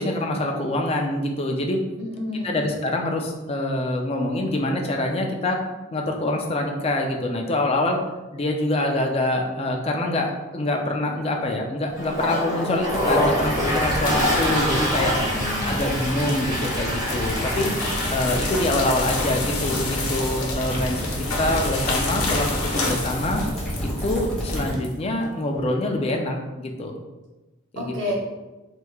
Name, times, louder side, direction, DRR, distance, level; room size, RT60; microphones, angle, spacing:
voice 1, 0.0-1.8 2.3-5.6 5.9-8.0 8.3-15.2 15.7-17.7 18.1-21.1 21.4-22.5 22.7-23.4 24.0-27.0 27.7-28.1, left 1 dB, 30° left, 2 dB, 0.3 m, -25 dB
voice 2, 2.0-2.6 15.2-15.8 27.8-28.1, left 1 dB, 55° right, -3 dB, 0.7 m, -30 dB
Toilet flush, 12.0-18.7, equal, 20° right, 1.4 m, -26 dB
sound 1, 12.9-24.7, equal, ahead, 1.2 m, -30 dB
sound 2, 13.3-24.9, left 3 dB, 90° left, 0.7 m, -30 dB
3.3 x 3.1 x 2.3 m, 1.1 s
head